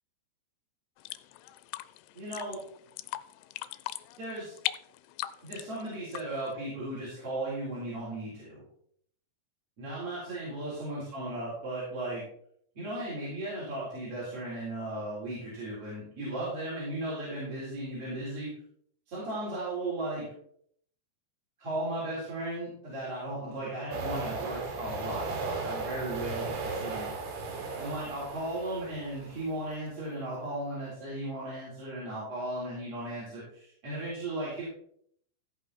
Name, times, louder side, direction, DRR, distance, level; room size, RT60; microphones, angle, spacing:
sound 1, 1.0-6.5, left 16 dB, 85° left, 2.5 m, -39 dB
voice 1, 2.1-2.6 4.2-4.5 5.4-8.6 9.8-12.2 12.7-18.5 19.1-20.3 21.6-27.1 27.8-34.6, right 1 dB, 35° right, -9 dB, 4.5 m, -36 dB
sound 2, 23.9-29.7, right 3 dB, 70° right, 3.7 m, -36 dB
16.0 x 5.5 x 4.2 m, 0.65 s
omnidirectional pair, 5.0 m